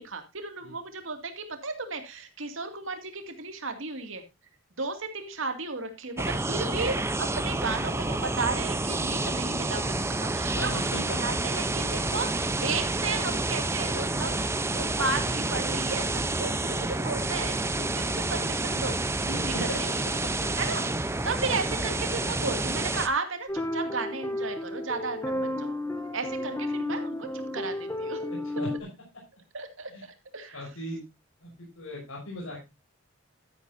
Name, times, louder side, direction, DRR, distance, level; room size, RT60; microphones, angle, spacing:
voice 1, 0.0-4.2 4.7-19.0 19.2-19.7 20.6-25.7 26.1-28.3 29.5-30.7, right 3 dB, 70° right, 6 dB, 2.3 m, -34 dB
sound 1, 6.2-23.1, right 2 dB, 10° right, 0.7 m, -29 dB
voice 2, 10.5-11.2 19.3-19.8 20.2-20.5 28.3-28.7 29.9-30.0 30.5-31.0 31.4-32.6, equal, 90° left, -3 dB, 5.8 m, -38 dB
sound 2, 23.5-28.8, left 1 dB, 10° left, 1.2 m, -32 dB
12.5 x 11.0 x 2.7 m, 0.24 s
head